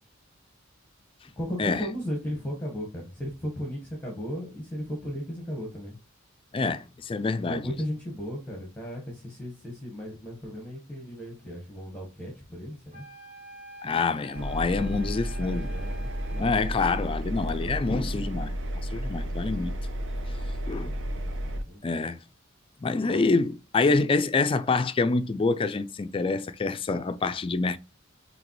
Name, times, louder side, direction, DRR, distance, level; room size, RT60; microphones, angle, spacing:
voice 1, 1.4-6.0 7.5-13.0 15.4-16.5 20.7-22.0, equal, 10° left, 1.1 m, -36 dB
voice 2, 6.5-7.7 13.8-15.7 16.4-18.6 18.9-19.8 20.7-20.9 21.8-22.2 22.8-27.8, left 3 dB, 25° left, 0.3 m, -26 dB
sound 1, 12.9-17.2, right 1 dB, 40° right, 2.8 m, -46 dB
Engine, 14.3-21.6, equal, 65° right, 0.6 m, -32 dB
5.0 x 3.3 x 3.0 m
head